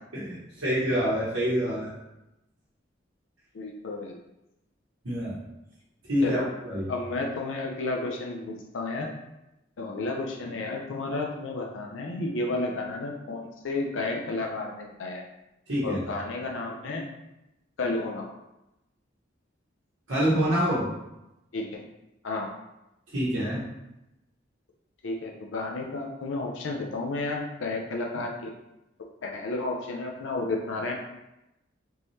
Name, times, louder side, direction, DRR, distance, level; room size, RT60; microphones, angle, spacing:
voice 1, 0.1-1.9 5.0-5.4 6.1-6.9 15.7-16.0 20.1-20.9 23.1-23.6, equal, 85° right, -9 dB, 1.0 m, -26 dB
voice 2, 3.5-4.1 6.2-6.5 6.9-9.1 9.8-15.2 15.8-17.0 17.8-18.3 21.5-21.8 22.2-22.5 25.0-28.5 29.2-30.9, left 2 dB, 85° left, 0 dB, 0.5 m, -32 dB
3.6 x 3.1 x 2.7 m, 0.92 s
head